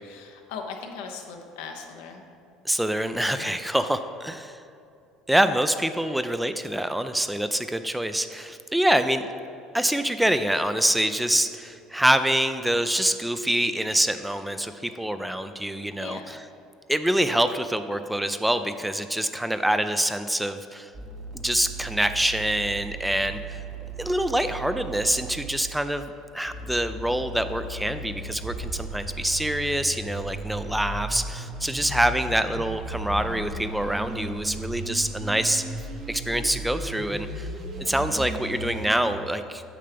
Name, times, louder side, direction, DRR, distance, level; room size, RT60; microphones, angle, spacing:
voice 1, 0.0-2.2 3.3-3.5 6.0-6.1 16.0-16.3, left 5 dB, 80° left, 3 dB, 0.8 m, -39 dB
voice 2, 2.6-4.6 5.3-9.3 9.7-16.5 16.9-20.9 21.3-23.6 24.0-35.6 36.1-37.5 37.8-39.6, right 1 dB, 5° right, 10 dB, 0.4 m, -25 dB
sound 1, 20.9-25.6 26.4-39.1, right 2 dB, 50° right, 1.0 m, -36 dB
8.6 x 5.6 x 3.4 m, 2.6 s
supercardioid pair, 80°, 0 cm